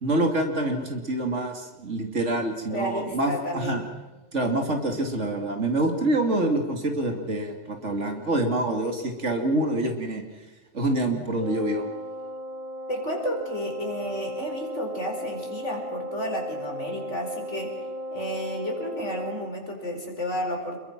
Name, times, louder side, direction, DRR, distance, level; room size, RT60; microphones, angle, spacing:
voice 1, 0.0-3.8 4.3-10.2 10.7-11.9, right 1 dB, 60° right, 4 dB, 3.0 m, -26 dB
voice 2, 2.7-3.8 12.9-17.7 18.1-20.8, equal, 60° left, 2 dB, 5.1 m, -32 dB
Wind instrument woodwind instrument, 11.4-19.6, equal, 40° right, 0.9 m, -36 dB
27.5 x 22.0 x 6.1 m, 1.2 s
omnidirectional pair, 1.4 m